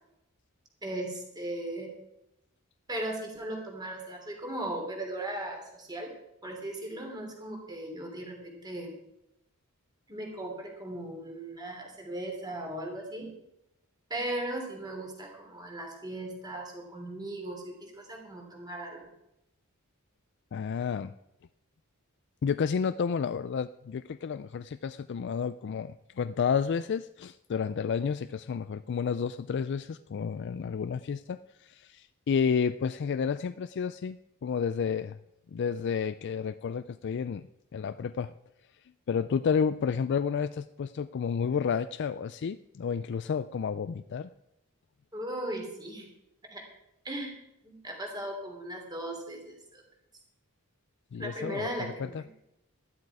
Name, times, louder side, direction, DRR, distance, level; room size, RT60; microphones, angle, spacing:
voice 1, 0.8-1.9 2.9-6.1 6.4-8.9 10.1-13.3 14.1-19.1 45.1-46.1 46.4-46.6 47.0-49.8 51.2-52.3, right 1 dB, 20° right, 1 dB, 3.1 m, -37 dB
voice 2, 20.5-21.1 22.4-35.2 35.5-37.5 37.7-38.3 39.1-44.3 51.1-51.7 52.1-52.2, left 6 dB, 55° left, 12 dB, 0.3 m, -31 dB
13.0 x 12.0 x 4.8 m, 0.86 s
head